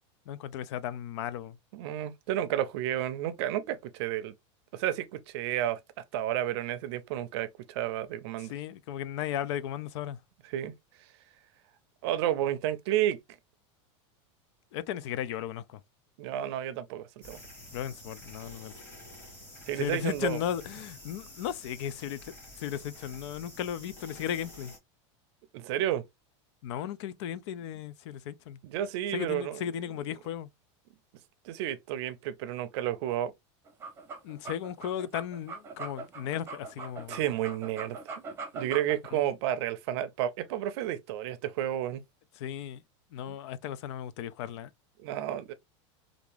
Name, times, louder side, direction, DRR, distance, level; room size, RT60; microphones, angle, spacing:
voice 1, 0.3-1.6 8.4-10.2 14.7-15.8 17.7-18.7 19.8-24.7 26.6-28.6 29.1-30.5 34.2-37.2 39.1-39.2 42.4-42.8 43.1-44.7, left 10 dB, 65° left, 0.4 m, -35 dB
voice 2, 1.7-4.3 4.7-5.8 6.1-8.5 10.5-10.7 12.0-13.2 16.2-17.4 19.7-20.4 25.5-26.0 28.6-29.7 31.4-33.3 37.1-38.0 38.5-42.0 43.3-43.4 45.0-45.5, right 12 dB, 60° right, 0.5 m, -31 dB
sound 1, 17.2-24.8, left 1 dB, 15° left, 1.8 m, -49 dB
sound 2, 33.7-39.1, right 4 dB, 15° right, 0.8 m, -41 dB
3.4 x 2.5 x 3.3 m
supercardioid pair, 155°, 16 cm